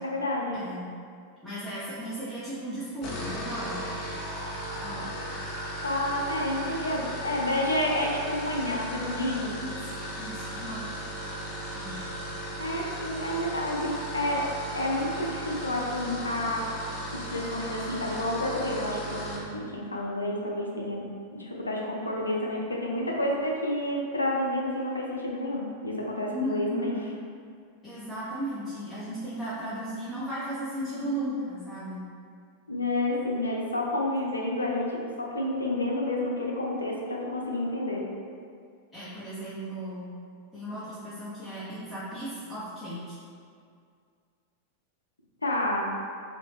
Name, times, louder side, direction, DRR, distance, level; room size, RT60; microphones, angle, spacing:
voice 1, 0.0-0.6 5.8-9.6 12.6-16.7 17.1-21.1 21.3-26.9 32.7-38.0 45.4-45.8, left 1 dB, 80° left, -2 dB, 0.5 m, -29 dB
voice 2, 1.4-3.8 4.8-5.1 9.6-10.9 11.7-11.9 26.3-26.9 27.8-32.0 38.9-40.1 40.5-43.2, right 1 dB, ahead, -13 dB, 0.9 m, -35 dB
sound 1, 2.9-19.5, equal, 35° left, 0.8 m, -36 dB
2.9 x 2.8 x 3.3 m, 2.2 s
figure-of-eight pair, 90°, 0 cm